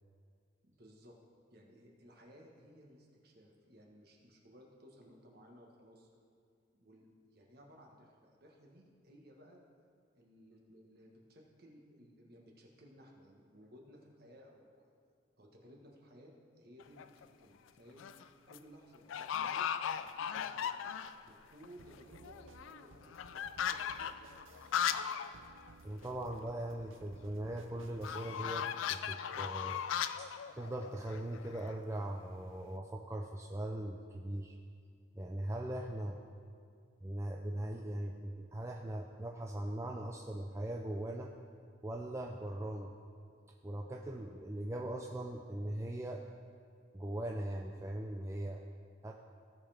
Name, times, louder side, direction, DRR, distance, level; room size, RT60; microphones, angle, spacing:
voice 1, 0.6-1.1 1.5-6.1 6.8-9.6 10.1-14.9 15.4-18.0 18.5-19.7 19.9-24.5, equal, 50° right, 0 dB, 1.3 m, -59 dB
sound 1, 16.8-17.2 17.8-18.2 18.5-18.6 19.1-21.3 21.6-21.7 21.9-25.3 25.6-25.7 26.0-26.1 28.0-31.8, left 8 dB, 70° left, 0.3 m, -37 dB
sound 2, 21.8-28.9, right 3 dB, 75° right, 0.6 m, -59 dB
voice 2, 25.8-29.8 30.2-30.3 30.5-34.6 35.1-36.2 37.0-41.3 41.8-42.9 43.6-46.2 46.9-48.6 49.0-49.1, right 1 dB, 15° right, 0 dB, 0.3 m, -40 dB
16.0 x 5.5 x 3.4 m, 2.3 s
head